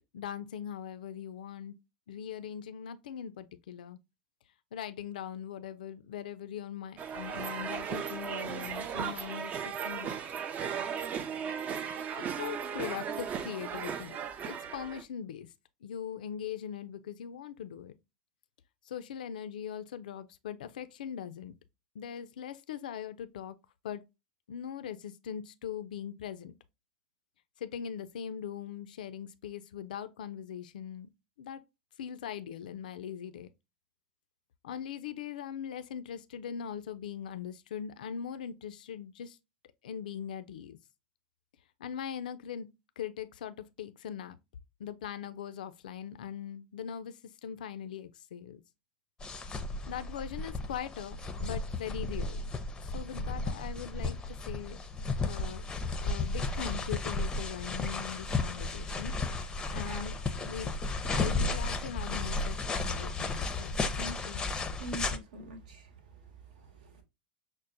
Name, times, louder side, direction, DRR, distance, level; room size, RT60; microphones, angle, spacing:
voice 1, 0.1-1.8 2.1-4.0 4.7-10.2 12.1-14.2 14.4-15.5 15.8-18.0 18.8-21.5 21.9-23.6 23.8-24.0 24.5-26.6 27.6-31.1 31.4-31.6 32.0-33.5 34.6-39.4 39.8-40.8 41.8-42.7 43.0-44.4 44.8-48.6 49.9-52.4 52.8-54.8 55.2-55.6 56.0-59.1 59.7-60.7 61.0-64.4, left 8 dB, 70° left, 0.3 m, -41 dB
sound 1, 7.0-15.0, right 7 dB, 35° right, 0.4 m, -36 dB
sound 2, 49.2-65.2, left 3 dB, 15° left, 0.5 m, -34 dB
voice 2, 59.6-60.0 64.8-65.9 66.6-67.0, right 2 dB, 65° right, 1.0 m, -44 dB
5.9 x 2.0 x 2.6 m
figure-of-eight pair, 85°, 5 cm